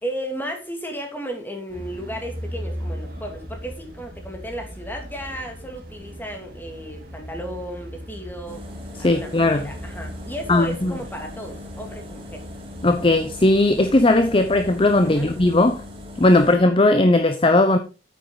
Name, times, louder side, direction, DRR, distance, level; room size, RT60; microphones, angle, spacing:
voice 1, 0.0-8.6 9.0-12.5 15.0-15.3, equal, 10° left, 2.5 m, -34 dB
sound 1, 1.7-15.6, equal, 50° right, 2.6 m, -38 dB
sound 2, 8.5-16.6, left 2 dB, 30° right, 2.1 m, -40 dB
voice 2, 9.0-9.7 10.5-10.9 12.8-15.8 16.2-17.8, left 2 dB, 30° left, 0.7 m, -17 dB
9.1 x 8.3 x 3.9 m
head